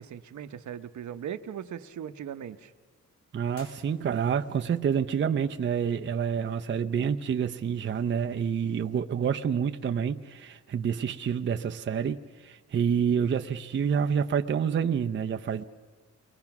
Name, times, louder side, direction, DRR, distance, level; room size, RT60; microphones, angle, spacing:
voice 1, 0.0-2.7, right 9 dB, 65° right, 10 dB, 0.9 m, -39 dB
voice 2, 3.3-15.6, right 7 dB, 35° right, 5 dB, 0.6 m, -28 dB
sound 1, 3.5-4.6, left 3 dB, 85° left, 3.4 m, -54 dB
29.0 x 21.5 x 5.9 m, 1.4 s
wide cardioid pair, 170°, 31 cm